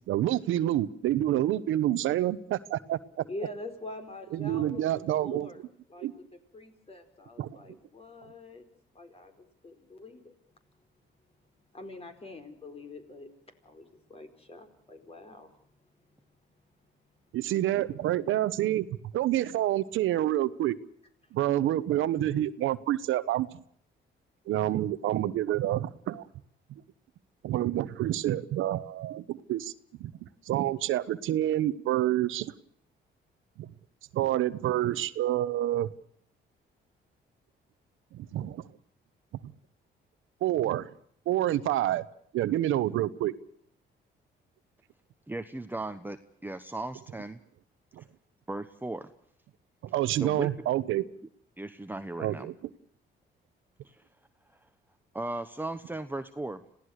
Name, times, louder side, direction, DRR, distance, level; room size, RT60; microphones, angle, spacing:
voice 1, 0.1-3.2 4.3-5.5 6.0-6.1 7.4-7.5 17.3-18.9 19.1-20.8 21.3-23.5 24.5-26.3 27.4-29.7 30.0-30.1 30.5-32.5 33.6-33.7 34.1-35.9 38.1-38.7 39.4-39.5 40.4-40.9 41.3-42.0 42.3-43.3 48.0-48.1 49.8-51.1 52.2-52.5, right 13 dB, 85° right, 15 dB, 1.0 m, -28 dB
voice 2, 3.2-5.6 5.9-8.7 8.9-10.3 11.7-15.5 17.2-17.3, left 2 dB, 30° left, 7 dB, 4.6 m, -45 dB
voice 3, 45.3-46.2 46.4-47.4 48.5-49.1 50.2-50.5 51.6-52.5 53.8-54.0 55.1-56.6, right 2 dB, 10° right, 9 dB, 1.1 m, -36 dB
27.0 x 17.0 x 6.5 m, 0.63 s
cardioid pair, 90°, 20 cm